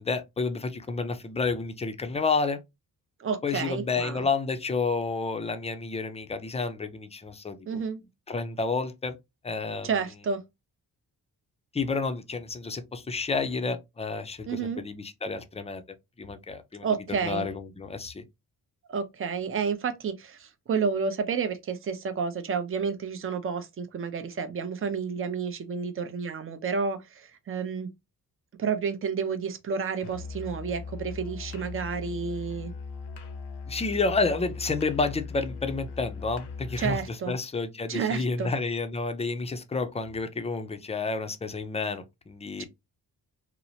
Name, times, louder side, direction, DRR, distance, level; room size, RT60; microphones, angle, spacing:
voice 1, 0.0-2.6 3.4-7.8 8.3-9.2 9.4-9.9 11.7-15.8 16.2-18.2 33.7-37.0 37.3-42.7, left 4 dB, 15° left, 0.4 m, -30 dB
voice 2, 3.2-4.3 7.7-8.0 9.8-10.4 14.5-14.8 16.8-17.5 18.9-27.9 28.6-32.7 36.8-37.3 37.9-38.5 42.6-42.7, right 6 dB, 35° right, 0.5 m, -30 dB
Musical instrument, 30.0-37.1, left 4 dB, 85° left, 0.7 m, -39 dB
2.9 x 2.0 x 2.7 m
cardioid pair, 85°, 39 cm